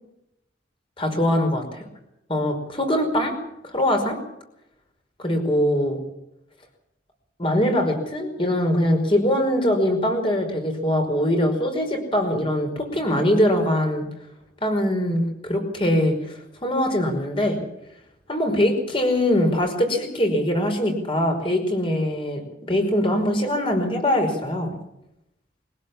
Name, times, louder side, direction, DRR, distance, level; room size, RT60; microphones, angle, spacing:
voice 1, 1.0-1.9 2.3-3.4 3.6-4.2 5.2-6.0 7.4-14.0 14.6-17.6 18.3-24.7, left 1 dB, 30° left, 4 dB, 5.3 m, -22 dB
23.5 x 16.5 x 7.3 m, 0.83 s
head